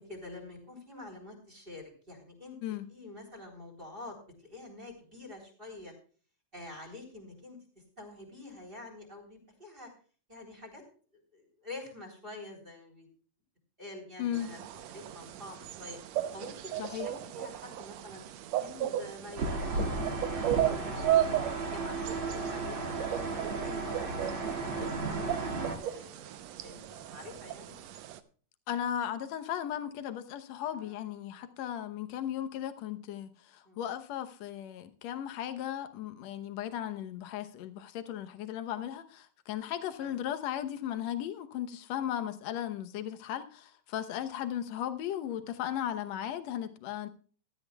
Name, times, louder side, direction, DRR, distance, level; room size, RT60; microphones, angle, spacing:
voice 1, 0.0-2.6 2.9-4.2 4.4-5.9 6.5-7.6 8.0-9.9 10.3-10.8 11.3-13.1 13.8-14.6 14.9-16.0 16.3-18.2 18.6-22.9 23.3-27.8 30.7-31.0 33.7-33.8 40.0-40.3, left 2 dB, 15° right, 3.7 m, -47 dB
voice 2, 14.2-14.5 16.8-17.1 28.7-47.1, left 10 dB, 65° left, 2.0 m, -36 dB
sound 1, 14.3-28.2, right 12 dB, 70° right, 1.8 m, -35 dB
sound 2, 19.4-25.8, right 3 dB, 40° right, 2.7 m, -34 dB
16.0 x 13.0 x 2.3 m
omnidirectional pair, 3.6 m